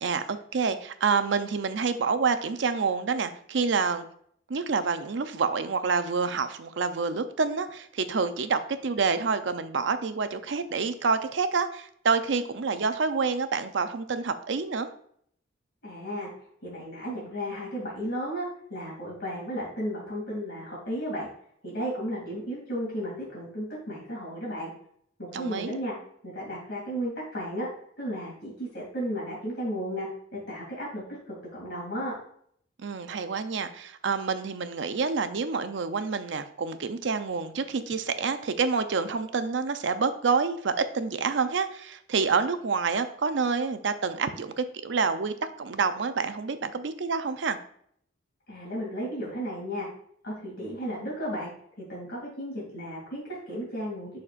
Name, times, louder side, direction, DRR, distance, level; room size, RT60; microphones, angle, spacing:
voice 1, 0.0-4.1 4.5-14.9 25.3-25.7 32.8-47.6, right 5 dB, 65° right, 10 dB, 0.5 m, -28 dB
voice 2, 15.8-16.3 16.6-21.3 21.6-24.7 25.2-25.9 26.2-27.7 28.0-32.1 48.5-49.9 50.2-51.5 51.8-54.1, equal, 55° left, -4 dB, 2.5 m, -34 dB
11.0 x 4.2 x 2.4 m, 0.65 s
head